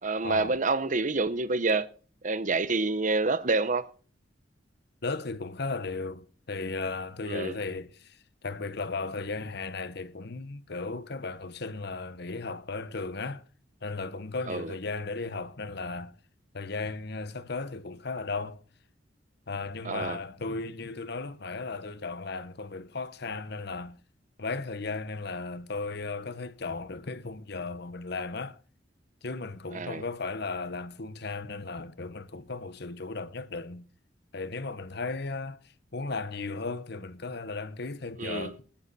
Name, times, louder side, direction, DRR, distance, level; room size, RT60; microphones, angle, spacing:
voice 1, 0.0-1.9 2.2-3.9 7.3-7.6 14.5-14.8 19.8-20.2 29.7-30.0 38.2-38.6, right 3 dB, 45° right, 0.9 m, -28 dB
voice 2, 5.0-8.2 8.4-13.4 13.8-16.1 16.5-18.6 19.5-24.0 24.4-28.6 29.2-33.8 34.3-35.6 35.9-38.6, left 3 dB, 65° left, 1.1 m, -35 dB
19.5 x 9.9 x 4.2 m
head